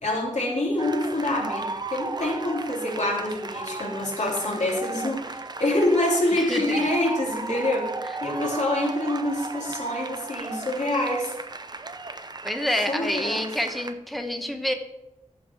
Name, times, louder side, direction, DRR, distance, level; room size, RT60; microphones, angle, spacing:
voice 1, 0.0-7.9 8.2-11.3 12.9-13.5, left 1 dB, 65° left, -3 dB, 3.1 m, -26 dB
sound 1, 0.8-13.9, right 3 dB, 35° right, 0.6 m, -35 dB
voice 2, 6.4-6.9 12.4-14.7, left 1 dB, ahead, 5 dB, 1.0 m, -28 dB
14.0 x 5.0 x 4.7 m, 0.92 s
wide cardioid pair, 90°, 13 cm